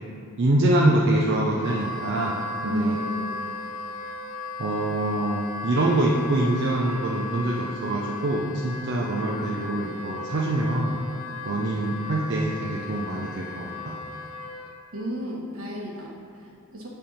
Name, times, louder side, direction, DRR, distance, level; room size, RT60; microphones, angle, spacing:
voice 1, 0.4-2.4 2.6-3.0 4.6-11.0 11.5-14.0, right 1 dB, 55° right, -3 dB, 0.6 m, -25 dB
Wind instrument woodwind instrument, 1.5-14.7, left 3 dB, 85° left, 0.7 m, -36 dB
voice 2, 2.6-3.3 14.9-16.9, equal, 75° right, -2 dB, 1.3 m, -31 dB
8.5 x 3.5 x 5.4 m, 2.5 s
head